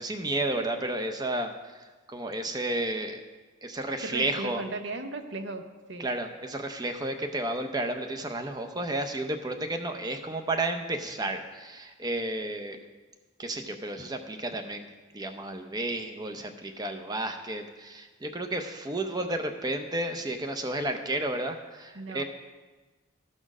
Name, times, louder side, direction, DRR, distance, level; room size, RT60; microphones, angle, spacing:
voice 1, 0.0-3.2 3.6-4.6 6.0-12.8 13.4-14.9 15.1-22.2, right 1 dB, 20° right, 6 dB, 0.6 m, -32 dB
voice 2, 4.0-5.6 5.9-6.1 21.9-22.2, right 2 dB, 60° right, 8 dB, 0.7 m, -36 dB
13.0 x 4.4 x 6.0 m, 1.3 s
head